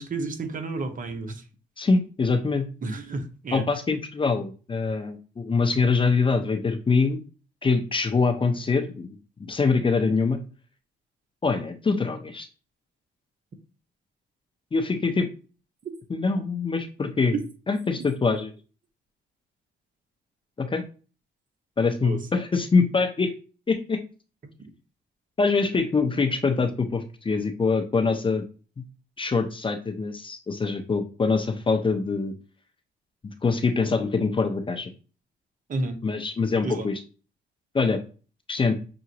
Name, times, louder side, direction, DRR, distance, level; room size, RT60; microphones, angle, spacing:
voice 1, 0.0-1.4 2.8-3.6 22.0-22.2 35.7-36.0 36.6-36.9, right 3 dB, 40° right, 6 dB, 0.9 m, -31 dB
voice 2, 1.8-2.7 3.5-7.2 7.6-10.4 11.4-12.5 14.7-15.3 16.1-17.3 17.7-18.5 20.6-20.8 21.8-23.3 23.7-24.0 25.4-28.4 28.8-28.9 29.2-32.3 33.2-34.9 36.0-37.0 37.7-38.0 38.5-38.7, left 4 dB, 25° left, 7 dB, 0.6 m, -24 dB
5.9 x 2.5 x 2.9 m, 0.36 s
cardioid pair, 90°, 20 cm